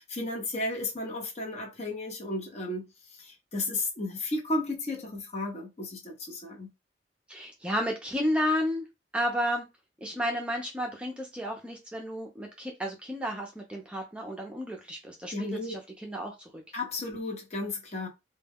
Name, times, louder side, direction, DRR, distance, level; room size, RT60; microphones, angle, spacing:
voice 1, 0.0-6.7 15.3-15.7 16.7-18.1, left 2 dB, 40° left, 0.7 m, -34 dB
voice 2, 7.3-8.8 9.1-9.7 10.0-16.6, equal, 5° right, 0.4 m, -32 dB
2.2 x 2.1 x 3.4 m
head